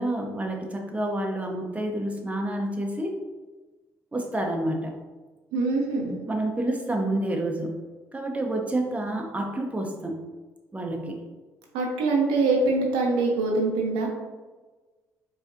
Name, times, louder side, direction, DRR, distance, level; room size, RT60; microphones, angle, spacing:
voice 1, 0.0-3.2 4.1-5.0 6.3-7.8 8.1-10.2 10.7-11.2, right 1 dB, 15° right, 1 dB, 0.8 m, -29 dB
voice 2, 5.5-6.1 11.7-14.1, right 3 dB, 70° right, 0 dB, 0.8 m, -24 dB
4.9 x 3.3 x 2.6 m, 1.3 s
hypercardioid pair, 50°, 9 cm